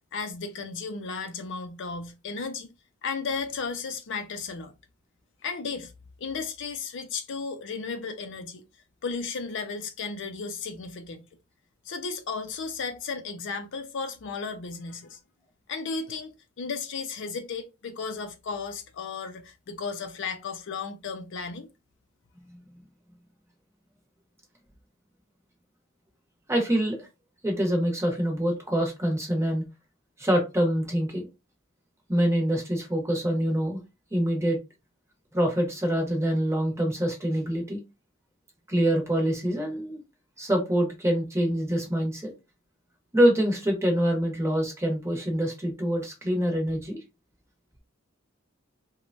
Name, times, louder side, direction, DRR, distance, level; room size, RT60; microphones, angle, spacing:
voice 1, 0.1-2.7 3.0-4.7 5.4-5.9 6.2-8.6 9.0-11.2 11.9-15.2 15.7-21.7, left 5 dB, 60° left, 0.5 m, -34 dB
voice 2, 26.5-27.1 27.4-29.6 30.2-31.3 32.1-33.8 34.1-34.6 35.3-37.8 38.7-40.0 40.4-42.3 43.1-47.0, equal, 15° right, 1.0 m, -25 dB
3.1 x 2.2 x 2.5 m
head